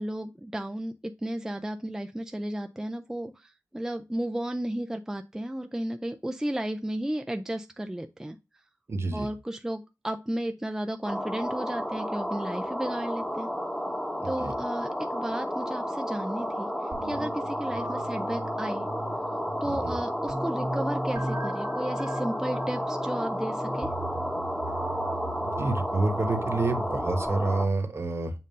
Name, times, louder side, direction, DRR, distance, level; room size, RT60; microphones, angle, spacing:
voice 1, 0.0-8.4 9.1-13.5 14.2-16.7 17.0-18.9 19.6-23.9, right 1 dB, 10° right, 6 dB, 0.4 m, -33 dB
voice 2, 8.9-9.3 14.2-14.5 19.7-19.9 25.4-28.3, right 3 dB, 45° right, 7 dB, 1.1 m, -28 dB
sound 1, 11.0-27.7, equal, 10° left, 1.0 m, -32 dB
sound 2, 16.9-27.3, right 2 dB, 75° right, 1.7 m, -38 dB
7.4 x 2.6 x 5.4 m, 0.26 s
wide cardioid pair, 110°, 6 cm